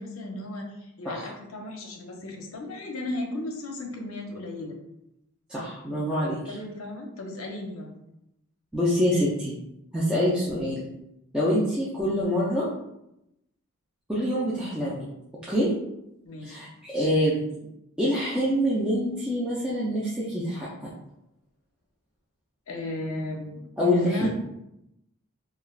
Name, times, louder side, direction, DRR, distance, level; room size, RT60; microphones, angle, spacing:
voice 1, 0.0-4.8 6.1-7.9 16.2-16.6 22.7-24.3, left 1 dB, 70° left, 2 dB, 0.6 m, -35 dB
voice 2, 5.5-6.6 8.7-9.5 9.9-10.9 11.3-12.7 14.1-15.1 15.5-15.7 16.4-17.4 18.0-20.9 23.8-24.3, equal, 5° right, -9 dB, 0.4 m, -25 dB
3.1 x 2.4 x 2.3 m, 0.85 s
head